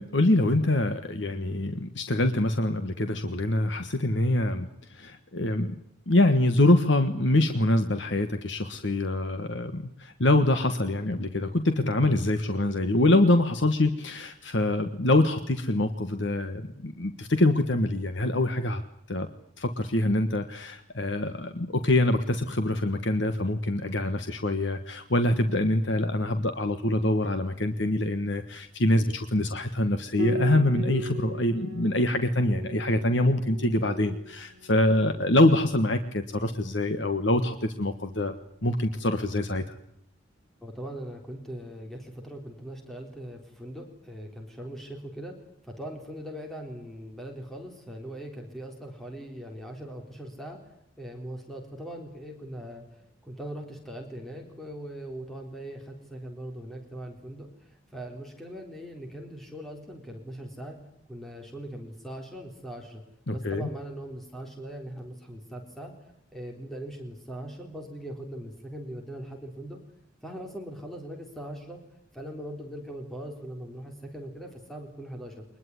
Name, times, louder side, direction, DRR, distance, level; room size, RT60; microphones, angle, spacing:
voice 1, 0.0-5.7 6.1-18.8 19.1-19.3 19.6-38.4 38.6-39.8 63.3-63.7, left 1 dB, 65° left, 8 dB, 1.5 m, -25 dB
Piano, 30.2-39.5, right 1 dB, 50° right, 3.1 m, -40 dB
voice 2, 40.6-45.4 45.6-50.6 51.0-60.8 61.1-63.0 63.3-65.9 66.3-69.8 70.2-71.8 72.1-75.5, right 1 dB, ahead, 2 dB, 3.7 m, -40 dB
23.0 x 21.0 x 9.7 m, 0.75 s
head